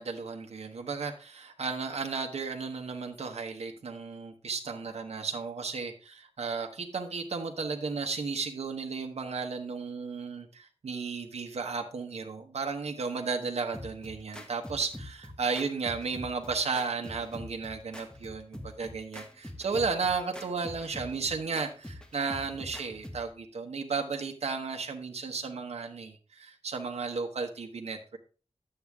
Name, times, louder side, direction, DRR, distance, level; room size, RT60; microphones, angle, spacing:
voice 1, 0.0-28.2, right 4 dB, 80° right, 3 dB, 1.1 m, -34 dB
sound 1, 13.7-23.3, left 1 dB, 10° left, 1.5 m, -45 dB
10.0 x 7.8 x 3.5 m, 0.36 s
wide cardioid pair, 85°, 11 cm